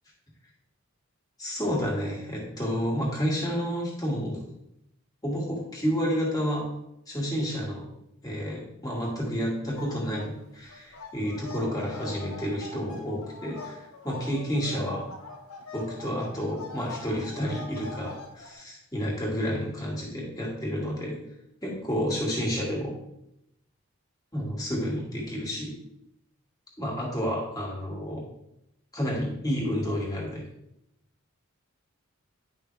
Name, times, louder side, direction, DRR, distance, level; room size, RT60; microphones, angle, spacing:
voice 1, 1.4-4.4 5.2-6.6 7.1-7.8 8.2-15.0 15.7-21.2 21.6-22.9 24.3-25.7 26.8-28.2 28.9-30.4, equal, 15° left, -3 dB, 2.2 m, -30 dB
sound 1, 9.8-10.3 10.6-18.5, left 3 dB, 85° left, 1.6 m, -43 dB
10.5 x 5.7 x 3.4 m, 0.82 s
head